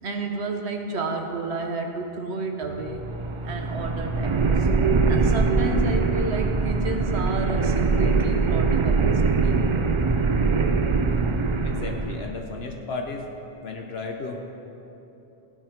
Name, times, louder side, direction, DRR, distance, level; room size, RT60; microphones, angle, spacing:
voice 1, 0.0-3.0 3.4-4.7 5.1-9.8, right 3 dB, 90° right, 3 dB, 1.4 m, -31 dB
slow grind, 2.8-12.4, right 4 dB, 40° right, 0.4 m, -22 dB
voice 2, 11.6-13.3 13.6-14.4, left 3 dB, 75° left, 2 dB, 1.1 m, -34 dB
15.5 x 8.8 x 5.1 m, 3.0 s
omnidirectional pair, 1.1 m